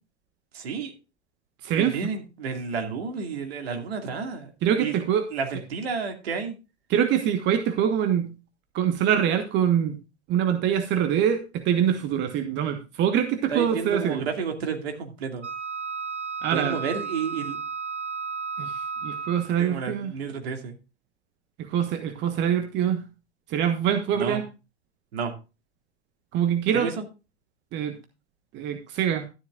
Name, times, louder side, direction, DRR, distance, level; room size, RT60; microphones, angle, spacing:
voice 1, 0.5-0.9 1.8-4.5 4.8-5.0 5.3-6.6 13.5-15.5 16.5-17.6 19.6-20.8 24.1-24.4 25.1-25.3 26.7-27.1, right 5 dB, 65° right, 4 dB, 2.4 m, -31 dB
voice 2, 1.6-2.0 4.6-5.2 6.9-8.3 8.7-10.0 10.3-14.2 16.4-16.8 18.6-20.1 21.6-23.1 23.5-24.4 26.3-26.9 27.7-27.9 28.5-29.3, right 9 dB, 35° right, 7 dB, 1.3 m, -24 dB
Wind instrument woodwind instrument, 15.4-19.6, right 5 dB, 90° right, 0.7 m, -33 dB
13.0 x 10.5 x 2.5 m, 0.30 s
figure-of-eight pair, 95°, 34 cm